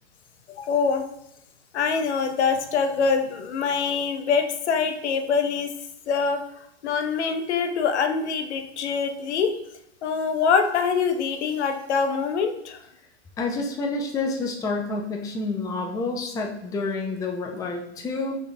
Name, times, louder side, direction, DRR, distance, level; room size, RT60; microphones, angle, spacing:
voice 1, 0.6-1.0 1.7-5.7 6.1-6.4 6.8-9.5 10.0-12.8, left 5 dB, 75° left, 7 dB, 0.7 m, -24 dB
voice 2, 13.4-18.4, left 3 dB, 10° left, 2 dB, 0.4 m, -28 dB
4.9 x 3.2 x 2.7 m, 0.79 s
hypercardioid pair, 110°, 34 cm